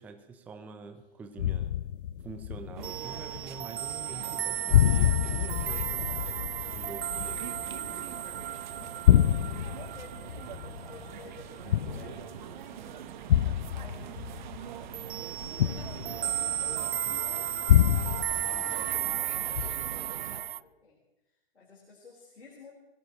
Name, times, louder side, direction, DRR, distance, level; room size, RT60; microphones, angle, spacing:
voice 1, 0.0-1.7 2.2-6.1 6.4-8.7, right 4 dB, 5° right, 7 dB, 0.5 m, -46 dB
sound 1, 1.4-3.7 3.9-4.4 4.7-8.4 8.8-12.4 13.3-16.9 17.7-19.2 19.6-20.1, left 11 dB, 55° left, 0.5 m, -27 dB
sound 2, 2.7-20.4, right 10 dB, 50° right, 0.9 m, -44 dB
sound 3, 2.8-13.2 13.5-13.9 14.1-20.6, right 11 dB, 75° right, 0.5 m, -35 dB
voice 2, 9.4-13.1 13.7-14.3 15.3-21.0 21.5-22.7, left 3 dB, 90° left, -3 dB, 4.1 m, -53 dB
22.0 x 17.0 x 3.0 m, 0.98 s
hypercardioid pair, 135°, 31 cm